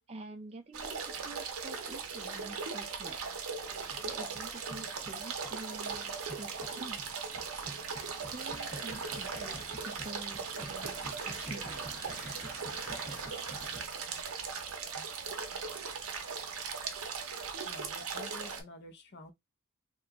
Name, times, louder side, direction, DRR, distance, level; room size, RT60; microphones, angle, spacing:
voice 1, 0.1-3.2 4.0-7.2 8.3-12.0, right 2 dB, 25° right, 0.4 m, -48 dB
sound 1, 0.7-18.6, right 5 dB, 70° right, 0.7 m, -39 dB
sound 2, 3.7-13.8, equal, 15° left, 1.0 m, -48 dB
voice 2, 17.6-19.3, left 1 dB, 50° left, 0.6 m, -50 dB
2.9 x 2.3 x 3.4 m
head